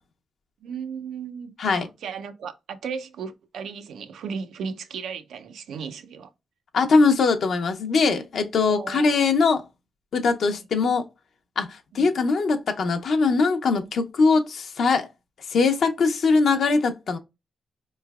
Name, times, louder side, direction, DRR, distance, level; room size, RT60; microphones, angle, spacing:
voice 1, 0.6-6.3 8.6-9.1 10.5-10.6 11.9-12.1, right 6 dB, 85° right, 0.5 m, -35 dB
voice 2, 6.7-9.6 10.1-11.0 11.6-15.1 15.5-17.2, left 4 dB, 70° left, 0.5 m, -21 dB
4.6 x 3.1 x 2.3 m
cardioid pair, 85°, 0 cm